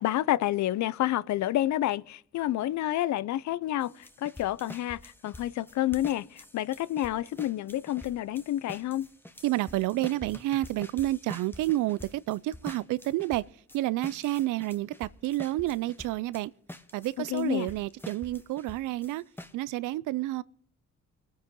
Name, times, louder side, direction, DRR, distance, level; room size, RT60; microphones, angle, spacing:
voice 1, 0.0-9.1 17.3-17.7, left 13 dB, 70° left, 0.6 m, -29 dB
sound 1, 3.8-16.4 16.7-19.5, left 1 dB, 5° left, 1.0 m, -47 dB
voice 2, 9.4-13.5 13.7-16.5 16.9-19.2 19.5-20.4, right 16 dB, 85° right, 0.5 m, -30 dB
22.5 x 9.6 x 3.8 m
cardioid pair, 90°, 30 cm